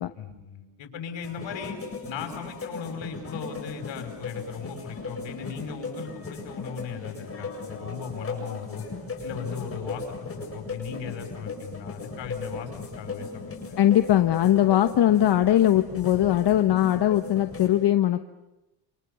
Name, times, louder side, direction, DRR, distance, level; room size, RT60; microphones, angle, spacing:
voice 1, 0.1-1.8 2.0-8.9 9.2-13.8, left 7 dB, 85° left, 4 dB, 6.3 m, -37 dB
sound 1, 1.2-17.7, left 3 dB, 30° left, 7.8 m, -37 dB
voice 2, 13.8-18.2, left 12 dB, 65° left, 8 dB, 1.2 m, -20 dB
28.5 x 27.0 x 7.0 m, 0.97 s
cardioid pair, 120°, 44 cm